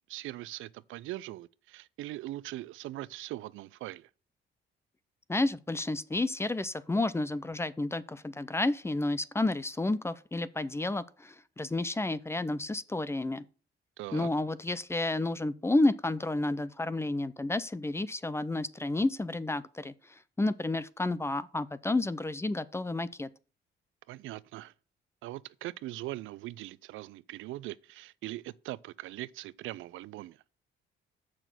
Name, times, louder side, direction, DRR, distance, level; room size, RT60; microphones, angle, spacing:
voice 1, 0.1-4.1 14.0-14.3 24.1-24.7 25.2-30.4, right 16 dB, 80° right, 0.4 m, -41 dB
voice 2, 5.3-13.4 14.1-19.9 20.4-23.3, left 2 dB, 15° left, 0.5 m, -31 dB
6.9 x 6.0 x 6.1 m
cardioid pair, 90°, 20 cm